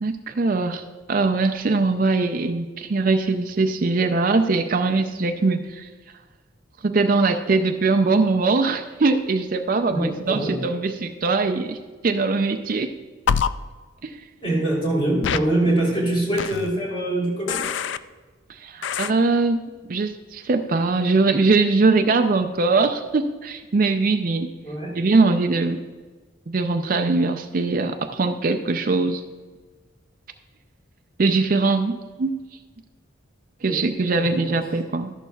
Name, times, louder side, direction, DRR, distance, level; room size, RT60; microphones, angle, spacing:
voice 1, 0.0-5.9 6.8-11.8 12.0-13.0 14.0-14.2 18.5-19.6 19.9-24.5 25.0-25.8 26.5-29.2 31.2-32.4 33.6-35.1, right 3 dB, 45° right, 7 dB, 0.4 m, -21 dB
voice 2, 9.9-10.5 14.4-17.6 24.6-25.0 33.7-33.8 34.2-34.3, right 1 dB, 30° left, -3 dB, 3.3 m, -23 dB
sound 1, 13.3-13.5 15.2-15.4 16.4-16.7 17.5-18.0 18.8-19.1, left 7 dB, 65° left, 0.3 m, -24 dB
13.0 x 11.5 x 2.3 m, 1.3 s
head